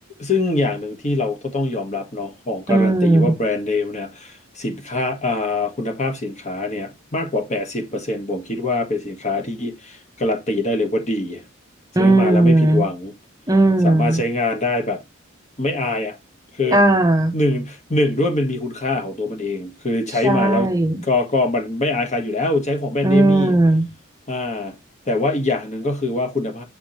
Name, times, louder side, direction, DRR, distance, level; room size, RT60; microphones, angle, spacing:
voice 1, 0.2-11.4 12.0-13.1 13.8-15.0 15.6-16.2 16.5-16.8 17.3-20.7 21.0-23.5 24.3-24.7 25.0-26.6, left 2 dB, 35° left, 1.6 m, -23 dB
voice 2, 2.7-3.3 12.0-12.8 13.5-14.2 16.7-17.3 20.2-21.0 23.0-23.9, right 2 dB, 15° right, 0.8 m, -16 dB
7.3 x 4.9 x 3.2 m
head